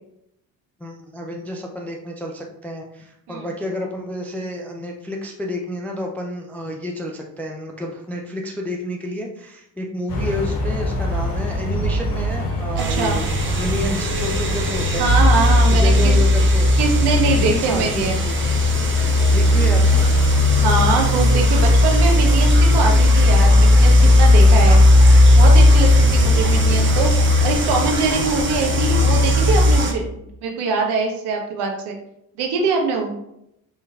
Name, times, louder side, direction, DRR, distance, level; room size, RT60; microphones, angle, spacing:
voice 1, 0.8-15.1 15.7-16.7 17.1-18.4 19.3-20.1, left 1 dB, 5° left, 1 dB, 0.3 m, -30 dB
sound 1, 10.1-29.8, left 2 dB, 85° left, 0.8 m, -16 dB
sound 2, 12.8-29.9, right 3 dB, 25° right, 0.7 m, -27 dB
voice 2, 12.8-13.2 15.0-16.1 16.8-18.1 20.6-24.8 25.4-27.1 27.4-32.0 32.4-33.2, right 4 dB, 55° right, 1 dB, 1.0 m, -23 dB
4.5 x 3.0 x 2.3 m, 0.80 s
hypercardioid pair, 55°, 47 cm